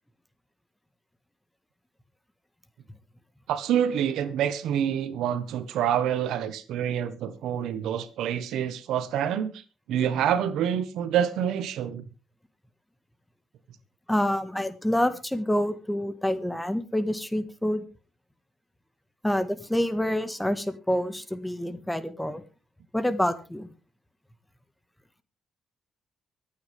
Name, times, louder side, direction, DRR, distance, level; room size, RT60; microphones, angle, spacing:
voice 1, 3.5-9.6 9.9-12.0, right 9 dB, 85° right, 1.3 m, -27 dB
voice 2, 14.1-17.9 19.2-22.4 22.9-23.7, left 1 dB, 5° left, 1.7 m, -27 dB
24.5 x 8.9 x 3.6 m
cardioid pair, 90°, 0 cm